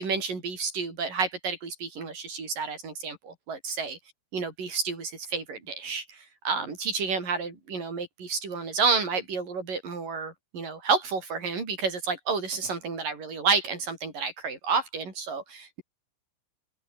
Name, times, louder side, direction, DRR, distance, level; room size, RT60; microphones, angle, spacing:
voice 1, 0.0-4.0 4.3-6.2 6.4-15.8, right 5 dB, 55° right, 8.1 m, -30 dB
omnidirectional pair, 4.7 m